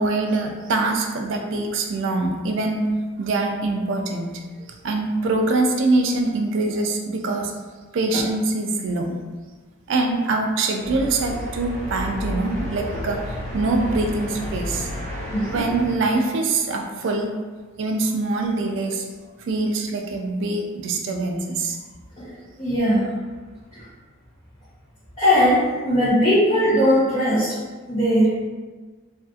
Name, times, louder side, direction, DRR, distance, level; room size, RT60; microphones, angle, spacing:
voice 1, 0.0-2.9 3.2-4.4 4.7-7.5 7.9-9.2 9.9-14.9 15.4-17.3 17.8-19.1 19.4-21.8, right 2 dB, 55° right, 3 dB, 0.3 m, -24 dB
sound 1, 10.8-15.9, equal, 35° right, 0.9 m, -31 dB
voice 2, 15.3-15.6 22.2-22.3 22.6-23.1 23.7-23.8 25.2-27.5 27.9-28.4, equal, 30° left, -12 dB, 0.7 m, -19 dB
2.6 x 2.3 x 2.3 m, 1.4 s
head